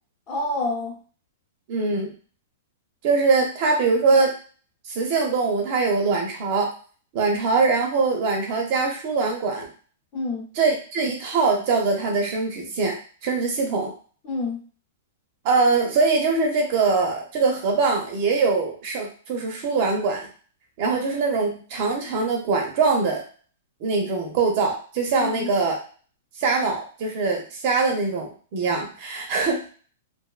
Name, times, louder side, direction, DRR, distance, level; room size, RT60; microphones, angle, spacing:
voice 1, 0.3-1.0 10.1-10.5 14.2-14.6 25.2-25.5, left 2 dB, 30° left, -2 dB, 0.9 m, -28 dB
voice 2, 1.7-2.1 3.0-4.3 4.9-6.7 7.1-9.7 10.5-13.0 13.2-13.9 15.4-20.3 20.8-23.2 23.8-25.8 26.4-29.6, right 4 dB, 40° right, 1 dB, 0.5 m, -22 dB
2.5 x 2.2 x 2.3 m, 0.41 s
hypercardioid pair, 165°, 0 cm